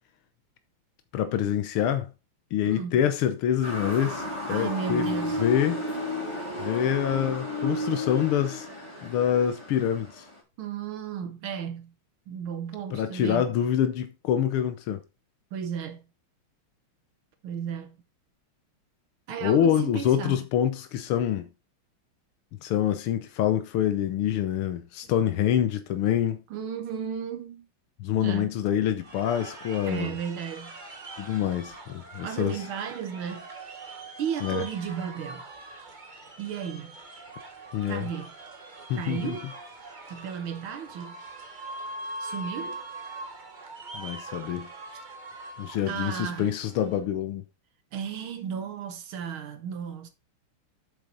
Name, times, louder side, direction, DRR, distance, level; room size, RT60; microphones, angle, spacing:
voice 1, 1.1-2.1 2.5-5.1 5.4-5.8 6.6-8.7 9.0-10.3 12.9-15.0 19.4-21.5 22.6-26.4 28.0-30.1 31.2-32.6 34.4-34.6 37.7-38.1 38.9-39.4 43.9-44.7 45.6-47.4, left 10 dB, 90° left, 1.8 m, -26 dB
voice 2, 2.6-3.0 4.5-5.4 10.6-11.9 12.3-13.5 15.5-16.0 17.4-18.0 19.3-20.4 26.5-27.7 28.2-28.5 29.9-30.8 32.2-33.5 34.2-35.4 36.4-36.9 37.9-38.3 39.0-39.5 40.1-41.2 42.2-42.8 44.9-45.0 45.9-46.5 47.9-50.1, right 7 dB, 75° right, 1.8 m, -34 dB
Motor vehicle (road) / Siren, 3.6-10.4, left 2 dB, 15° left, 3.3 m, -33 dB
sound 1, 29.0-47.0, right 2 dB, 30° right, 1.1 m, -42 dB
8.4 x 6.9 x 3.9 m
omnidirectional pair, 2.3 m